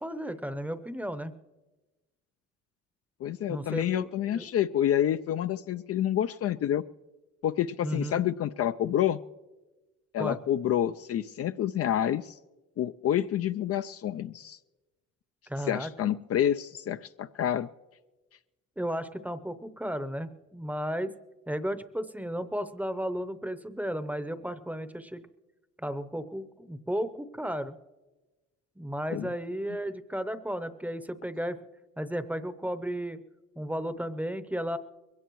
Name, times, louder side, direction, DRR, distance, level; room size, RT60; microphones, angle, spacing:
voice 1, 0.0-1.4 3.5-4.5 7.8-8.3 10.2-10.4 15.5-16.1 18.8-21.1 21.5-25.2 25.8-27.8 28.8-31.6 32.0-33.2 33.6-34.8, equal, 5° right, 11 dB, 0.7 m, -34 dB
voice 2, 3.2-6.8 7.4-9.2 10.1-12.4 12.8-14.6 15.7-17.7 29.1-29.3, left 11 dB, 55° left, 11 dB, 0.4 m, -28 dB
22.0 x 17.0 x 3.1 m, 1.2 s
cardioid pair, 90°, 30 cm